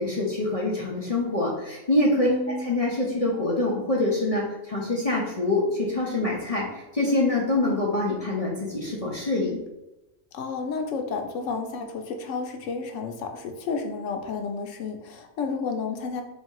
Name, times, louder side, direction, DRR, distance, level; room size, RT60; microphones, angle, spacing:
voice 1, 0.0-2.3 2.6-6.7 6.9-9.6, left 2 dB, 40° left, -4 dB, 0.6 m, -25 dB
voice 2, 2.3-2.7 10.3-16.2, left 4 dB, 85° left, 4 dB, 1.0 m, -31 dB
3.2 x 2.8 x 4.5 m, 0.97 s
omnidirectional pair, 1.3 m